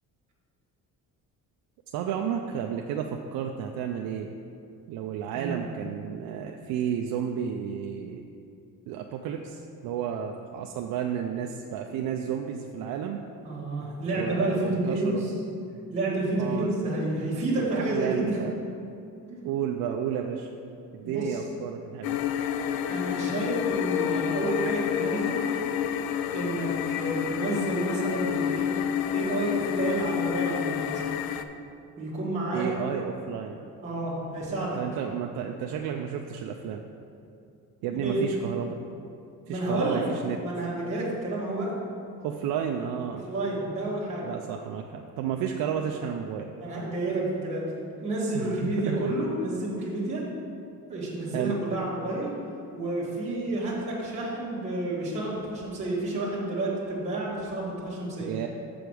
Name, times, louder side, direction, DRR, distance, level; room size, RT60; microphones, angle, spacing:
voice 1, 1.9-4.3 4.9-8.2 8.9-13.2 14.1-15.2 16.4-16.7 17.6-18.6 19.4-20.5 20.9-22.2 32.5-33.7 34.7-36.8 37.8-38.8 39.5-40.4 42.2-43.2 44.2-46.5 48.3-49.1 49.8-49.9 51.3-51.6 58.2-58.5, right 8 dB, 75° right, 2 dB, 0.5 m, -32 dB
voice 2, 13.4-15.3 15.9-18.4 19.3-19.4 21.0-21.4 22.9-25.4 26.3-28.7 29.1-31.1 32.0-32.6 33.8-34.8 38.0-38.2 39.5-40.0 40.4-41.7 43.3-44.3 46.6-47.6 48.0-50.2 50.9-52.3 52.7-58.3, right 2 dB, 20° right, -8 dB, 1.5 m, -30 dB
sound 1, 22.0-31.4, left 9 dB, 80° left, 0.5 m, -29 dB
6.9 x 5.1 x 6.2 m, 2.6 s
cardioid pair, 175°, 35 cm